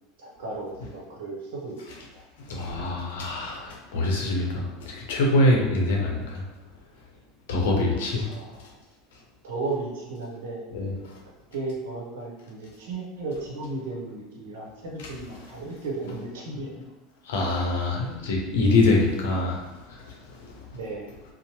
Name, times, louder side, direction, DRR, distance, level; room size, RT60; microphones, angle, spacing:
voice 1, 0.2-1.8 2.1-2.2 8.2-8.8 9.4-10.6 11.5-16.9 20.7-21.1, right 3 dB, 85° right, -2 dB, 0.7 m, -35 dB
voice 2, 2.4-6.5 7.5-8.3 10.7-11.2 17.2-20.6, left 2 dB, 90° left, 0 dB, 0.6 m, -25 dB
2.8 x 2.0 x 2.9 m, 1.1 s
supercardioid pair, 120°, 0 cm